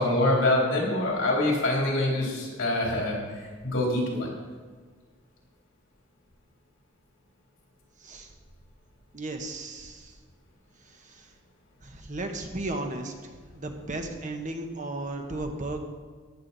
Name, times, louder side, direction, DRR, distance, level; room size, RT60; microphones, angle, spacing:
voice 1, 0.0-3.2 3.6-4.3, left 1 dB, 70° left, -3 dB, 3.7 m, -25 dB
voice 2, 8.0-8.3 9.1-10.1 10.8-11.3 11.8-15.8, right 2 dB, 40° right, 4 dB, 1.3 m, -35 dB
14.0 x 10.5 x 4.1 m, 1.5 s
head